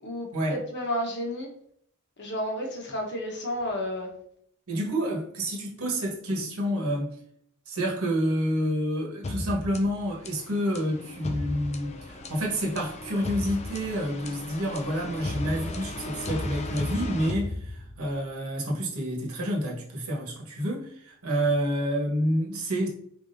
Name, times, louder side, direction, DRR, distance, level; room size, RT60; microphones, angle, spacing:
voice 1, 0.0-1.5 2.2-4.1, equal, 50° left, 1 dB, 1.1 m, -31 dB
voice 2, 4.7-7.1 7.7-22.9, equal, 70° right, -2 dB, 1.2 m, -28 dB
sound 1, 9.2-18.2, left 2 dB, 30° left, 0.4 m, -35 dB
4.7 x 3.6 x 2.6 m, 0.66 s
head